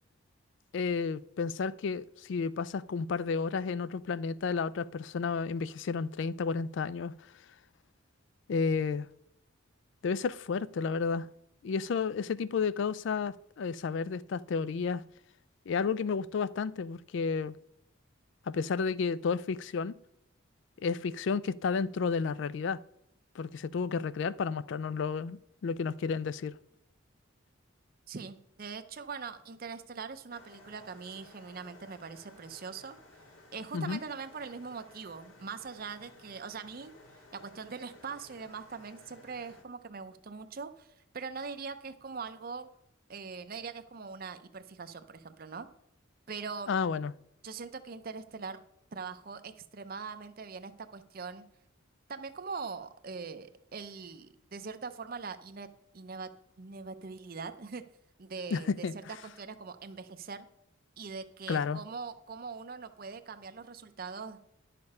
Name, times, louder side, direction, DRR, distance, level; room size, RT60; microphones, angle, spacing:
voice 1, 0.7-7.1 8.5-9.1 10.0-11.3 11.6-15.0 15.7-17.5 18.5-19.9 20.8-22.8 23.4-26.5 33.7-34.0 46.7-47.1 58.5-58.9 61.5-61.8, left 5 dB, 60° left, 0.3 m, -31 dB
voice 2, 28.1-33.0 33.5-36.9 37.3-42.7 43.1-45.7 46.3-46.7 47.4-48.6 48.9-51.4 52.1-55.7 55.9-56.3 56.6-57.8 58.2-60.5 61.0-64.4, right 5 dB, 45° right, 0.6 m, -42 dB
sound 1, 30.3-39.6, left 2 dB, 75° left, 1.8 m, -57 dB
10.5 x 6.7 x 5.4 m
head